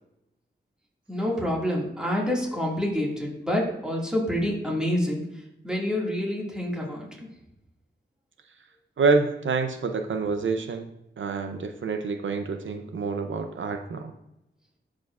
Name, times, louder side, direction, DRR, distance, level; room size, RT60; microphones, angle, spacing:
voice 1, 1.1-5.2 5.6-7.3, left 1 dB, 5° right, -3 dB, 1.9 m, -27 dB
voice 2, 9.0-10.9 11.2-14.1, right 4 dB, 75° right, 6 dB, 0.6 m, -27 dB
11.5 x 4.9 x 2.4 m, 0.88 s
wide cardioid pair, 105°, 20 cm